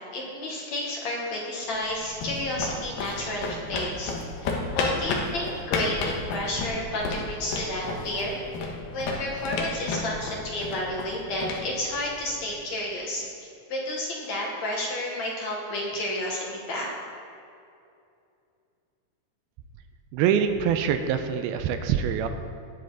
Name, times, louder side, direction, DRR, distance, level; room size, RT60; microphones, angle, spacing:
voice 1, 0.1-4.1 4.4-8.4 8.9-13.3 13.7-16.9, left 1 dB, 55° left, -2 dB, 2.4 m, -31 dB
sound 1, 1.8-12.6, left 3 dB, 70° left, 2.9 m, -32 dB
voice 2, 20.1-22.3, right 8 dB, 85° right, 8 dB, 2.5 m, -24 dB
20.5 x 7.7 x 4.0 m, 2.5 s
omnidirectional pair, 4.4 m